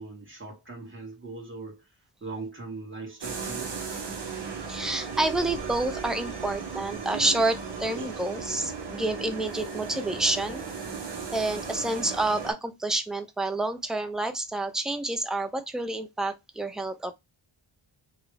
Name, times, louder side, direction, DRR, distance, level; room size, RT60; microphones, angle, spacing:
voice 1, 0.0-1.9 2.2-3.9, right 3 dB, 25° right, 1.6 m, -40 dB
sound 1, 3.2-12.5, right 5 dB, 55° right, 1.0 m, -36 dB
voice 2, 4.7-10.6 11.3-17.1, right 2 dB, ahead, 0.3 m, -29 dB
3.0 x 2.4 x 3.1 m
wide cardioid pair, 95°, 49 cm